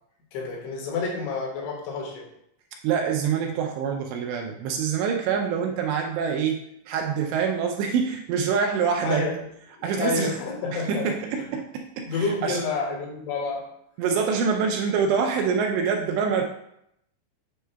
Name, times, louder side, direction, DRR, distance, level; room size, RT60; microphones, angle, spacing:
voice 1, 0.3-2.3 9.0-9.3 9.7-11.1 12.1-13.7, left 4 dB, 85° left, -2 dB, 3.8 m, -29 dB
voice 2, 2.8-6.6 6.9-9.2 9.8-10.3 10.7-12.6 14.0-16.5, right 6 dB, 80° right, 2 dB, 2.6 m, -25 dB
8.4 x 5.5 x 2.2 m, 0.76 s
omnidirectional pair, 5.4 m